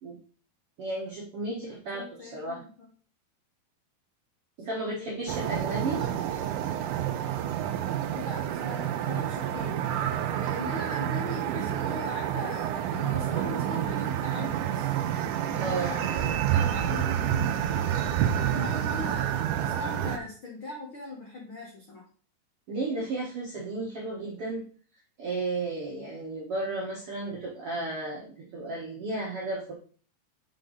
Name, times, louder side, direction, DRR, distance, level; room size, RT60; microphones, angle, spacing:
voice 1, 0.8-2.6 4.6-6.0 15.5-16.0 22.7-24.6 25.2-29.7, right 2 dB, 70° right, -3 dB, 1.4 m, -33 dB
voice 2, 1.9-2.9 4.7-5.1 6.0-6.1 8.0-9.7 10.3-14.9 15.4-17.9 18.4-22.0, left 2 dB, 70° left, -2 dB, 1.2 m, -40 dB
sound 1, 5.3-20.2, right 10 dB, 90° right, 1.8 m, -29 dB
6.0 x 5.3 x 3.9 m, 0.42 s
omnidirectional pair, 4.3 m